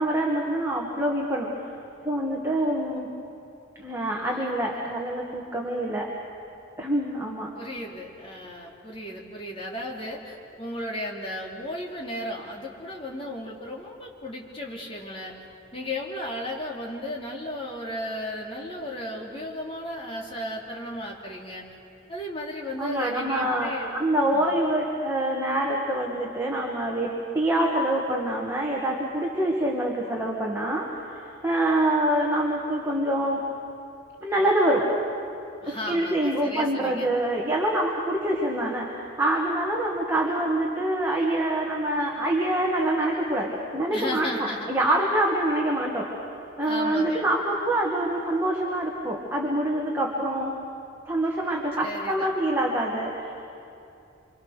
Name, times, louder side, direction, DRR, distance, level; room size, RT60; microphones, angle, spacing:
voice 1, 0.0-1.5 2.0-3.1 3.8-6.1 6.8-7.5 22.8-27.1 27.3-33.4 34.2-34.9 35.7-38.9 39.2-46.1 46.6-50.5 51.1-53.3, right 1 dB, 15° right, -2 dB, 2.0 m, -25 dB
voice 2, 4.2-4.9 7.5-15.3 15.7-21.6 22.1-24.0 24.3-24.6 35.6-37.1 43.9-44.7 46.6-47.3 51.8-52.3, left 1 dB, 30° left, -2 dB, 3.3 m, -35 dB
26.5 x 26.5 x 6.7 m, 2.6 s
head